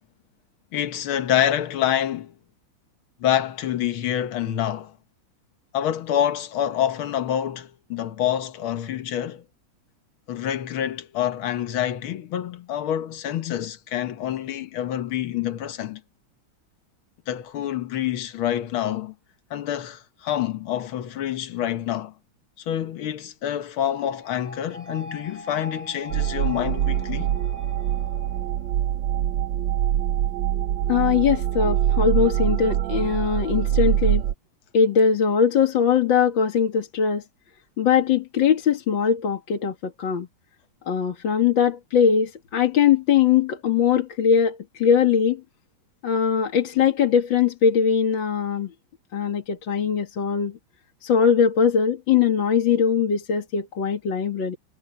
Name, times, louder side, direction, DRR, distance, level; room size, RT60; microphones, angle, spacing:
voice 1, 0.7-2.3 3.2-4.9 5.7-9.4 10.3-16.0 17.3-19.1 19.5-22.1 22.7-27.3, left 11 dB, 85° left, 2.0 m, -27 dB
sound 1, 23.9-28.9, equal, 15° left, 6.7 m, -41 dB
sound 2, 26.1-34.3, right 11 dB, 75° right, 1.3 m, -24 dB
voice 2, 30.9-34.2 34.7-37.2 37.8-40.3 40.9-45.4 46.0-48.7 49.1-50.5 51.0-54.6, left 7 dB, 65° left, 2.4 m, -21 dB
omnidirectional pair, 2.2 m